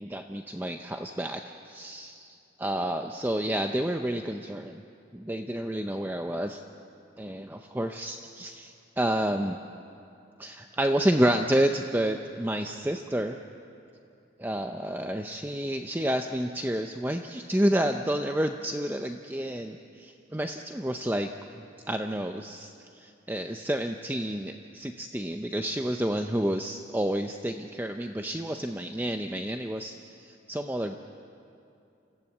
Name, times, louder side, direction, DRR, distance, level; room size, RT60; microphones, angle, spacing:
voice 1, 0.0-4.8 5.1-6.6 7.2-9.6 10.4-13.4 14.4-31.0, right 1 dB, 10° right, 5 dB, 0.5 m, -30 dB
28.5 x 15.5 x 8.3 m, 2.6 s
head